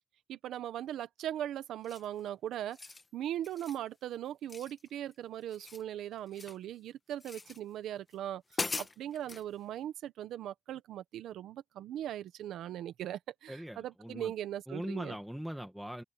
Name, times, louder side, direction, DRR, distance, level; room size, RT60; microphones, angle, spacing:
voice 1, 0.3-15.2, right 11 dB, 80° right, 1.4 m, -39 dB
sound 1, 1.8-2.2 2.6-3.1 3.4-3.8 4.5-5.1 5.4-6.6 7.2-7.6 8.1-8.2 8.5-9.4, left 3 dB, 25° left, 1.6 m, -41 dB
voice 2, 13.5-14.3 14.7-16.0, equal, 5° right, 2.1 m, -40 dB
open air
cardioid pair, 90°, 0 cm